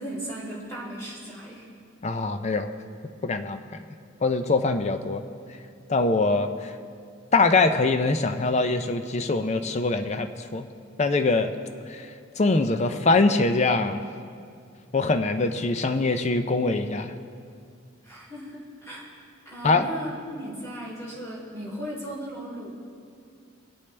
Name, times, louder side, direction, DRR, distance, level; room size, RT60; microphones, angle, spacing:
voice 1, 0.0-1.6 18.0-19.1 19.5-22.7, equal, 15° left, -6 dB, 3.5 m, -36 dB
voice 2, 2.0-2.7 3.2-3.6 4.2-5.2 5.9-6.7 7.3-10.7 11.0-11.5 11.9-12.0 12.4-14.0 14.9-17.1 19.6-19.9, left 3 dB, 35° left, 8 dB, 0.5 m, -23 dB
21.5 x 8.4 x 3.3 m, 2.3 s
head